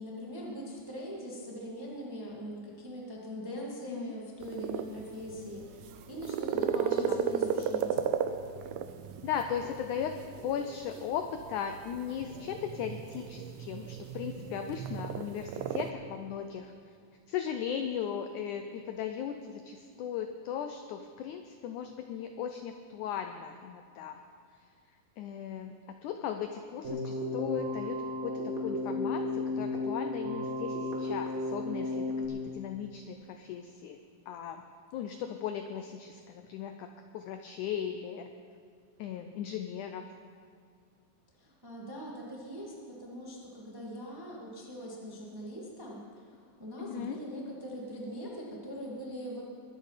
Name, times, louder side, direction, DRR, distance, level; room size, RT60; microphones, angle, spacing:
voice 1, 0.0-8.0 41.4-49.4, equal, 10° right, -3 dB, 1.0 m, -41 dB
sound 1, 4.4-15.9, right 8 dB, 85° right, 1.6 m, -35 dB
voice 2, 9.2-10.2 10.4-16.7 17.3-24.2 25.2-25.7 26.0-34.0 34.3-34.6 34.9-36.9 37.1-38.3 39.0-40.0 46.8-47.2, left 8 dB, 80° left, 6 dB, 1.8 m, -37 dB
Keyboard (musical), 26.8-32.3, left 2 dB, 45° right, 1.1 m, -34 dB
22.0 x 8.5 x 5.8 m, 2.2 s
omnidirectional pair, 4.2 m